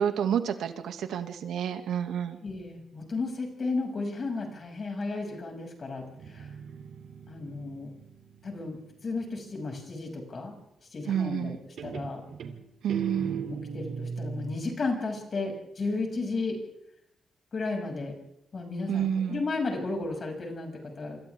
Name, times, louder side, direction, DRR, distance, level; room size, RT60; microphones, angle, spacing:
voice 1, 0.0-2.4 11.1-11.6 12.8-13.5 18.9-19.4, right 8 dB, 85° right, 6 dB, 2.2 m, -29 dB
voice 2, 2.4-6.5 7.3-7.9 8.4-10.6 10.9-11.5 11.8-12.2 13.4-16.6 17.5-18.2 18.5-21.2, left 3 dB, 35° left, 2 dB, 6.8 m, -33 dB
Guitar, 6.0-9.6 11.1-11.5 11.8-14.7, right 6 dB, 65° right, 3.0 m, -39 dB
28.0 x 27.0 x 3.7 m, 0.77 s
wide cardioid pair, 155°, 0 cm